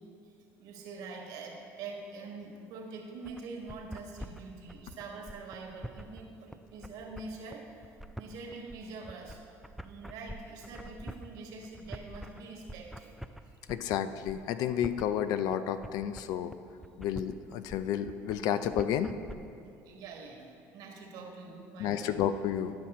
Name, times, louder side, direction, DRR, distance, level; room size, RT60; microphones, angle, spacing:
voice 1, 0.0-7.8 8.2-9.5 9.8-13.1 13.4-13.6 19.8-22.2, right 3 dB, 65° right, 1 dB, 1.5 m, -45 dB
sound 1, 3.2-19.4, equal, ahead, 0.3 m, -45 dB
voice 2, 13.7-16.5 17.0-19.1 21.8-22.7, left 9 dB, 70° left, 11 dB, 0.4 m, -31 dB
11.0 x 5.9 x 4.2 m, 2.5 s
supercardioid pair, 90°, 7 cm